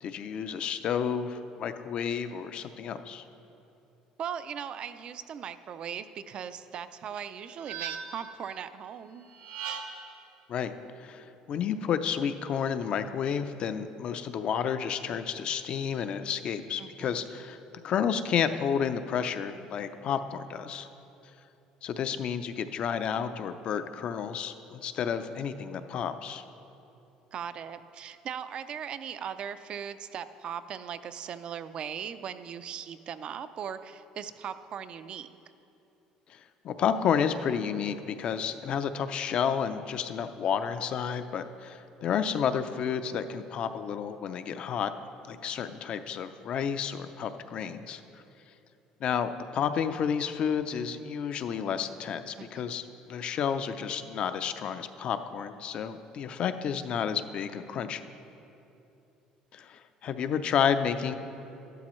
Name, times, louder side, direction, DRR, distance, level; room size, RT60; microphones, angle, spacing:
voice 1, 0.0-3.2 10.5-10.7 11.0-17.6 17.8-20.9 21.8-26.4 36.3-44.9 45.2-48.0 49.0-58.0 59.5-61.2, left 7 dB, 50° left, 10 dB, 0.5 m, -31 dB
voice 2, 4.2-9.3 16.8-17.3 27.3-35.3 52.4-52.7, right 8 dB, 45° right, 12 dB, 0.4 m, -39 dB
sound 1, 7.1-8.4 9.3-10.2, right 7 dB, 85° right, 0.7 m, -39 dB
13.0 x 11.5 x 3.1 m, 2.9 s
cardioid pair, 130°, 2 cm